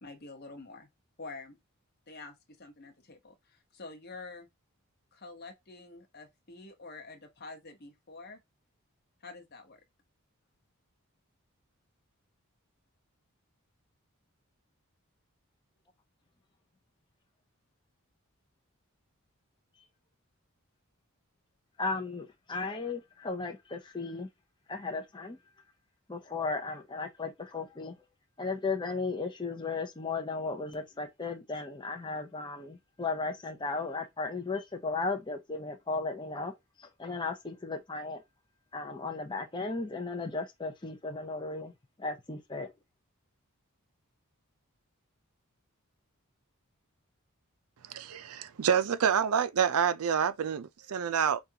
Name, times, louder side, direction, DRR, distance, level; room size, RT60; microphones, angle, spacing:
voice 1, 0.0-0.9 1.2-1.6 2.1-4.5 5.1-8.4 9.2-9.8, left 3 dB, 45° left, 1.0 m, -47 dB
voice 2, 21.8-24.3 24.7-25.4 26.1-27.9 28.4-38.2 38.7-41.7 42.0-42.7, left 3 dB, 20° left, 0.6 m, -35 dB
voice 3, 47.9-51.4, right 7 dB, 80° right, 0.5 m, -28 dB
5.1 x 2.4 x 2.8 m
head